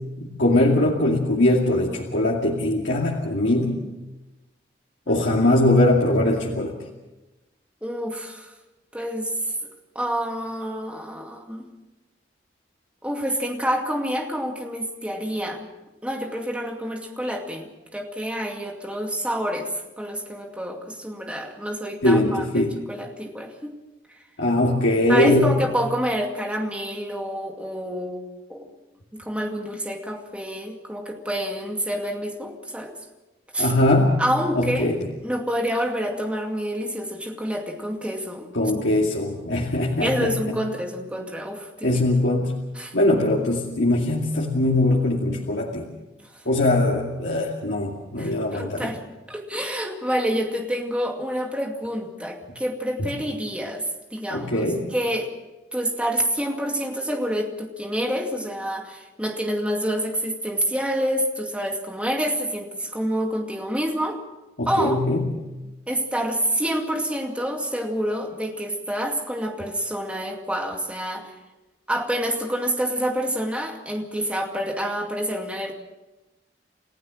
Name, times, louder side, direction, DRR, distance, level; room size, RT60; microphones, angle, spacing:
voice 1, 0.2-3.8 5.1-6.8 22.0-22.7 24.4-25.6 33.6-34.2 34.6-35.0 38.5-40.4 41.8-42.6 42.9-45.9 46.5-48.9 53.0-53.1 54.3-54.8 64.6-65.3, left 1 dB, 90° left, -2 dB, 2.4 m, -21 dB
voice 2, 5.1-5.6 7.8-8.5 8.9-9.4 9.9-11.7 13.0-15.7 16.0-23.8 24.1-24.2 25.1-28.7 29.1-33.0 33.5-33.7 34.2-35.0 35.2-38.5 40.0-41.9 42.7-43.0 46.2-46.4 48.2-49.0 49.3-55.3 55.7-64.2 64.7-65.0 65.9-71.3 71.9-75.7, equal, 5° right, 2 dB, 2.2 m, -28 dB
29.0 x 15.5 x 6.3 m, 1.1 s
head